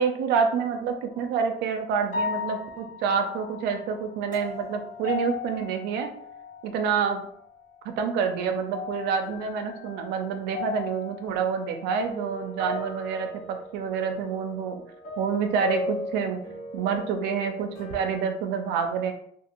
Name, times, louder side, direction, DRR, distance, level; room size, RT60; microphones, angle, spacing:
voice 1, 0.0-6.1 6.7-7.3 7.8-14.8 15.2-16.4 16.7-19.1, right 6 dB, 90° right, 5 dB, 0.5 m, -27 dB
sound 1, 1.1-1.5 2.1-7.0 7.3-8.1 8.5-18.2, left 3 dB, 50° left, 1.1 m, -37 dB
2.5 x 2.4 x 2.9 m, 0.66 s
cardioid pair, 110°, 17 cm